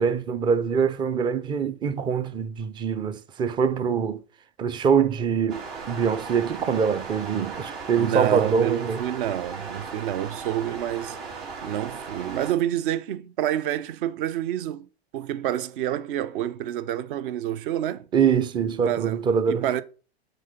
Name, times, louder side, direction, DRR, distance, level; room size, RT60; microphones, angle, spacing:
voice 1, 0.0-4.2 4.6-9.0 18.1-19.8, right 6 dB, 15° right, 0.4 m, -24 dB
sound 1, 5.5-12.5, right 5 dB, 70° right, 3.7 m, -37 dB
voice 2, 8.0-11.2 11.6-14.9 15.1-18.1 18.8-19.8, right 11 dB, 55° right, 0.7 m, -28 dB
6.4 x 4.5 x 5.2 m
hypercardioid pair, 105°, 32 cm